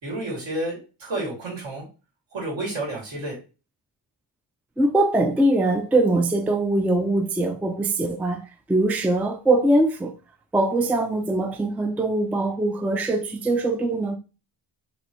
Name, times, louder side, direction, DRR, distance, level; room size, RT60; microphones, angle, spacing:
voice 1, 0.0-1.8 2.3-3.4, right 1 dB, 75° right, 2.9 m, -30 dB
voice 2, 4.8-8.4 8.7-10.1 10.5-14.2, right 2 dB, 5° right, 0.3 m, -22 dB
5.2 x 3.4 x 3.0 m
wide cardioid pair, 150°, 46 cm